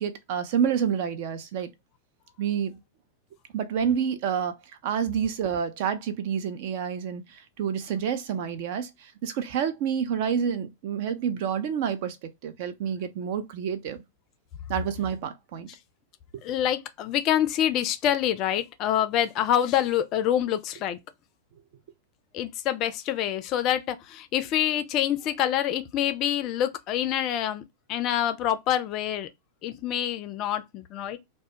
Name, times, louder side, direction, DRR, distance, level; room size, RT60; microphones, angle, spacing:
voice 1, 0.0-1.7 2.4-2.8 3.5-4.6 4.8-12.2 12.4-14.0 14.7-15.7, right 8 dB, 50° right, 0.4 m, -28 dB
voice 2, 16.4-21.0 22.3-27.6 27.9-29.3 29.6-31.2, left 11 dB, 40° left, 0.3 m, -26 dB
2.1 x 2.0 x 2.8 m
figure-of-eight pair, 90°, 0 cm